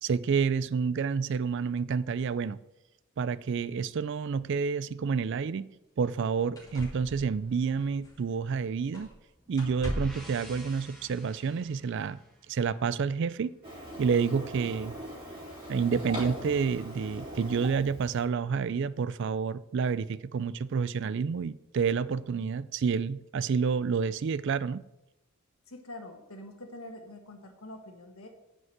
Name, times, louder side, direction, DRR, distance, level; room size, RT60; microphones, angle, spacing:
voice 1, 0.0-2.6 3.2-5.7 6.0-9.1 9.5-12.2 12.5-13.5 14.0-15.0 15.7-24.8, right 5 dB, 55° right, 0.3 m, -29 dB
sound 1, 6.0-6.2 6.6-8.5 8.9-9.2 9.5-10.3 11.4-11.5, equal, 15° left, 2.5 m, -39 dB
sound 2, 9.4-13.2, equal, ahead, 1.8 m, -51 dB
Printer, 13.6-18.2, equal, 25° right, 3.6 m, -41 dB
voice 2, 25.7-28.3, left 1 dB, 70° left, 1.8 m, -45 dB
9.4 x 5.3 x 7.9 m
head